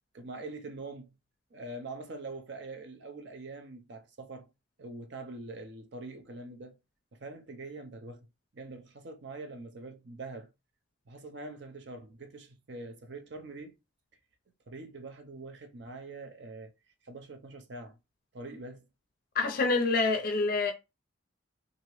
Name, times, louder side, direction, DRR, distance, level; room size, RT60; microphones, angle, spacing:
voice 1, 0.1-1.1 1.5-4.5 4.8-6.8 7.1-8.3 8.5-10.5 11.1-13.8 14.7-16.7 17.0-18.0 18.3-18.9, right 2 dB, 55° right, 0.6 m, -44 dB
voice 2, 19.4-20.7, left 3 dB, 45° left, 0.5 m, -26 dB
2.8 x 2.6 x 3.0 m
head